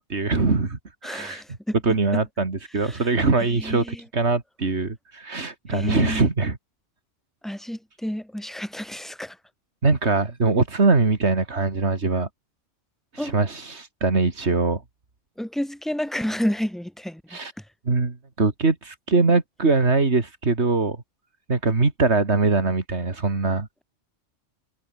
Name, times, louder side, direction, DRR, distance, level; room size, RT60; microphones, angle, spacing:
voice 1, 0.0-1.4 1.8-3.8 4.1-6.6 9.8-12.3 13.1-14.8 17.3-17.5 17.9-21.0 21.5-23.7, right 3 dB, 65° right, 2.9 m, -22 dB
voice 2, 1.0-1.8 2.8-3.0 3.5-4.0 5.7-6.2 7.4-9.4 13.2-13.3 15.4-17.2, equal, ahead, 1.3 m, -30 dB
omnidirectional pair, 1.3 m